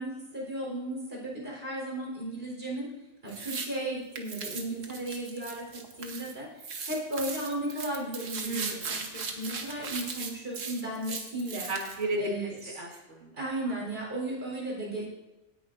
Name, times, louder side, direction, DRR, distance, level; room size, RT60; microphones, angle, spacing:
voice 1, 0.0-2.9 3.2-11.7 12.2-12.7 13.4-15.1, right 1 dB, 50° right, -3 dB, 4.5 m, -35 dB
sound 1, 3.3-3.7 4.1-6.3 6.6-12.0, right 4 dB, 90° right, 1.6 m, -38 dB
voice 2, 8.4-9.0 11.7-13.3, right 1 dB, 70° right, 0 dB, 2.3 m, -34 dB
17.5 x 10.0 x 2.6 m, 1.0 s
omnidirectional pair, 1.3 m